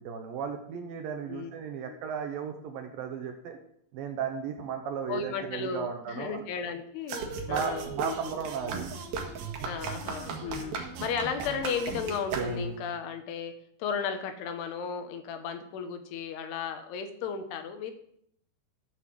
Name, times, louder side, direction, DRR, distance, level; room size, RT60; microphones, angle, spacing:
voice 1, 0.0-3.6 3.9-6.4 7.4-8.9, right 7 dB, 75° right, 4 dB, 2.1 m, -35 dB
voice 2, 5.1-7.2 7.5-8.3 9.6-13.5 13.8-17.9, left 6 dB, 70° left, 8 dB, 2.8 m, -35 dB
sound 1, 7.1-12.9, right 4 dB, 60° right, 2.9 m, -36 dB
13.5 x 6.6 x 7.6 m, 0.69 s
omnidirectional pair, 5.5 m